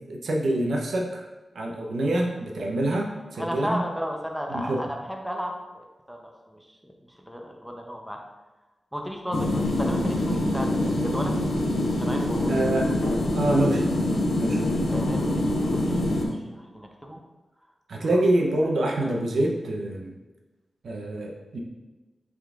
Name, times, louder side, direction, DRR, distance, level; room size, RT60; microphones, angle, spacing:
voice 1, 0.1-1.2 1.5-3.8 4.5-4.8 12.5-14.0 14.3-14.6 17.9-20.1 20.8-21.6, right 1 dB, 85° right, 0 dB, 0.6 m, -26 dB
voice 2, 3.4-6.2 6.5-6.9 7.3-8.2 8.9-11.3 12.0-12.5 12.8-12.9 14.9-16.0 16.6-17.2 18.1-18.2, equal, ahead, 1 dB, 0.6 m, -34 dB
sound 1, 9.3-16.3, left 1 dB, 85° left, 0.7 m, -25 dB
5.8 x 3.8 x 2.4 m, 1.1 s
wide cardioid pair, 95°, 0 cm